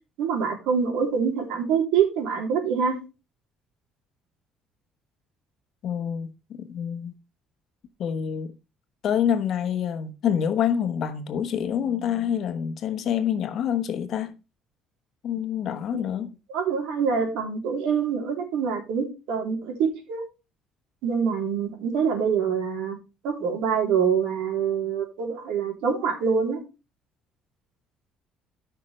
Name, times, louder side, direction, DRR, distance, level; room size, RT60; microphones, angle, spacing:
voice 1, 0.2-2.9 16.5-20.2 21.0-23.0 23.2-26.6, right 6 dB, 85° right, 3.3 m, -25 dB
voice 2, 5.8-7.1 8.0-8.6 9.0-14.4 15.2-16.4, left 8 dB, 45° left, 1.1 m, -27 dB
14.0 x 5.9 x 3.2 m
cardioid pair, 175°, 0 cm